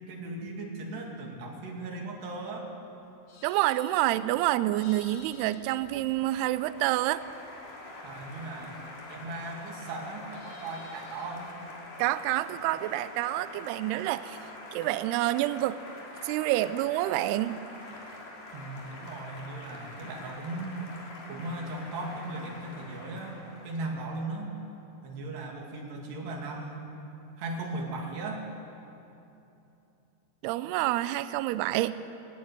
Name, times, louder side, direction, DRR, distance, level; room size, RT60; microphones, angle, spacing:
voice 1, 0.1-2.7 8.0-11.5 13.7-13.8 18.5-20.8 21.3-24.6 25.0-26.9 27.4-28.5, right 2 dB, 65° right, 0 dB, 4.6 m, -38 dB
Livestock farm animals working animals, 3.0-6.7 7.0-9.6 9.9-11.5, left 3 dB, 80° left, 4.8 m, -55 dB
voice 2, 3.4-7.2 12.0-14.4 14.7-15.8 16.2-17.6 30.4-32.0, right 15 dB, 85° right, 14 dB, 2.3 m, -28 dB
Applause, 5.0-23.9, left 2 dB, 50° left, 4.5 m, -46 dB
17.5 x 17.5 x 9.7 m, 2.9 s
omnidirectional pair, 5.3 m